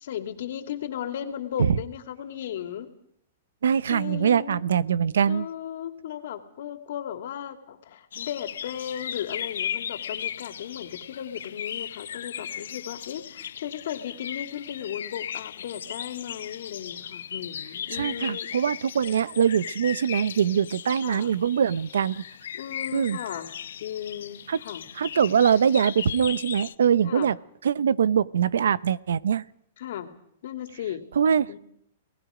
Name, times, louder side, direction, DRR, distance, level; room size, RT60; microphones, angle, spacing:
voice 1, 0.0-2.9 3.9-4.6 5.2-18.5 21.0-21.3 22.5-23.5 23.8-24.9 27.0-27.3 29.8-30.1 30.4-31.1 31.5-31.6, left 10 dB, 65° left, 7 dB, 2.5 m, -36 dB
voice 2, 3.6-5.5 18.0-22.2 22.9-23.2 24.5-24.6 25.0-27.4 27.6-29.4 31.2-31.5, right 8 dB, 90° right, 18 dB, 0.8 m, -23 dB
sound 1, 8.1-26.7, left 9 dB, 80° left, 0.8 m, -37 dB
29.5 x 19.5 x 5.0 m, 0.71 s
hypercardioid pair, 145°, 0 cm